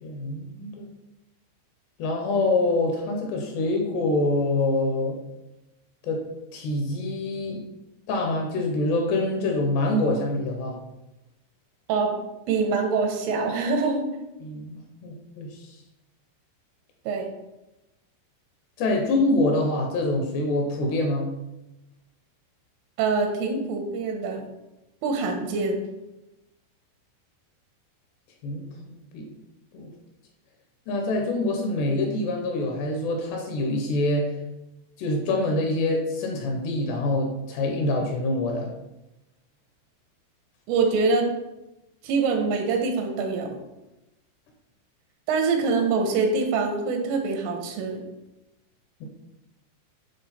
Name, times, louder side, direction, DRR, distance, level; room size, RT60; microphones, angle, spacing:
voice 1, 0.0-0.9 2.0-5.2 6.0-6.2 6.5-7.6 8.1-10.8 14.4-15.8 18.8-21.3 28.4-29.3 29.7-29.9 30.9-34.3 35.0-38.7 49.0-49.1, left 2 dB, 75° left, 1 dB, 2.7 m, -25 dB
voice 2, 12.5-14.1 17.1-17.3 23.0-24.4 25.0-25.8 40.7-41.3 42.0-43.6 45.3-48.0, right 4 dB, 90° right, 4 dB, 3.6 m, -24 dB
9.9 x 3.6 x 4.2 m, 0.96 s
omnidirectional pair, 5.6 m